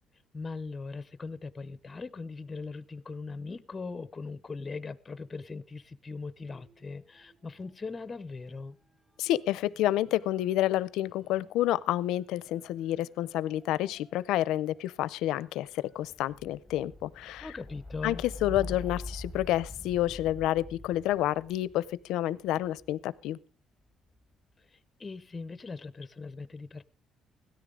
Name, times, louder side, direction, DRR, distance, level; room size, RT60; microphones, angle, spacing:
voice 1, 0.3-8.8 17.4-18.2 24.6-26.9, left 4 dB, 20° left, 16 dB, 0.6 m, -40 dB
sound 1, 6.4-7.8 8.0-23.1 23.9-24.4, left 2 dB, 5° right, 1.0 m, -47 dB
voice 2, 9.2-17.5 18.0-23.4, left 14 dB, 90° left, 20 dB, 0.6 m, -29 dB
17.0 x 13.5 x 3.8 m, 0.32 s
cardioid pair, 155°, 0 cm